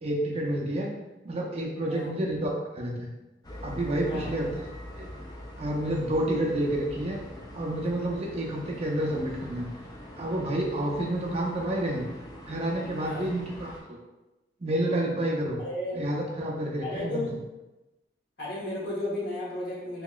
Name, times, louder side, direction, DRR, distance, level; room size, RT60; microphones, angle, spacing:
voice 1, 0.0-0.9 1.2-3.1 3.6-4.6 4.9-5.1 5.6-7.2 7.5-9.7 10.2-12.0 12.5-14.0 14.6-15.6 15.9-17.3, right 1 dB, 35° right, -2 dB, 0.5 m, -29 dB
sound 1, 3.4-13.8, equal, 20° left, 0.4 m, -43 dB
voice 2, 15.6-16.0 16.8-17.4 18.4-20.0, left 1 dB, 65° left, -5 dB, 1.0 m, -34 dB
2.9 x 2.9 x 2.3 m, 1.0 s
head